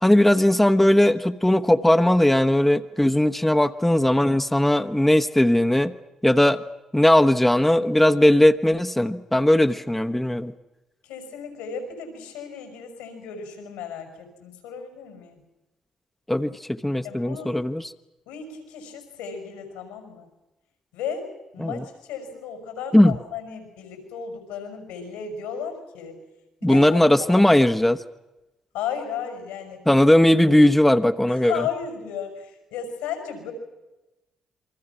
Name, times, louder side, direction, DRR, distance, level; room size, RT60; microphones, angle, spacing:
voice 1, 0.0-5.9 6.2-6.6 6.9-10.5 16.3-17.9 21.6-21.8 22.9-23.2 26.6-28.0 29.9-31.6, left 1 dB, 10° left, 8 dB, 1.1 m, -18 dB
voice 2, 11.0-15.4 17.0-17.6 18.3-20.3 20.9-21.3 21.5-26.2 26.6-27.5 28.7-29.9 31.3-33.5, left 7 dB, 85° left, 6 dB, 5.8 m, -34 dB
28.5 x 23.5 x 6.0 m, 1.0 s
hypercardioid pair, 50°, 2 cm